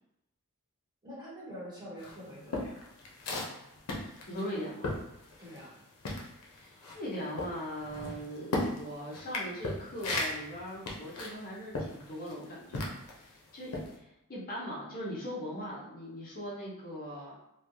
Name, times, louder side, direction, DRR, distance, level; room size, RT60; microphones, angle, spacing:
voice 1, 1.0-2.8 5.4-5.7, equal, 20° right, -8 dB, 1.1 m, -45 dB
sound 1, 2.0-5.8 6.0-13.2 13.7-13.9, left 2 dB, 80° left, 0.6 m, -36 dB
voice 2, 4.0-5.0 6.5-17.3, equal, 40° left, -5 dB, 0.7 m, -40 dB
sound 2, 5.8-5.9 6.5-6.6 7.7-8.3 10.1-10.8 11.1-11.2, equal, 10° left, 0.9 m, -48 dB
3.0 x 2.2 x 2.7 m, 0.85 s
head